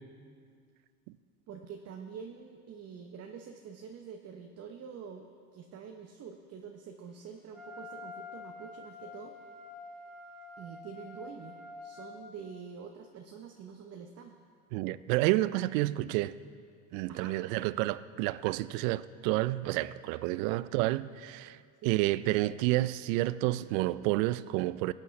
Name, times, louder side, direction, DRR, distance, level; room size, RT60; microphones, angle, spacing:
voice 1, 1.5-9.4 10.6-11.6 11.8-14.4 17.1-17.4 21.8-22.0, right 6 dB, 35° right, 0.8 m, -46 dB
Wind instrument woodwind instrument, 7.5-12.1, left 3 dB, ahead, 3.3 m, -47 dB
voice 2, 14.7-16.3 16.9-21.6 21.8-24.9, right 17 dB, 65° right, 0.5 m, -29 dB
17.5 x 8.6 x 3.2 m
supercardioid pair, 100°, 44 cm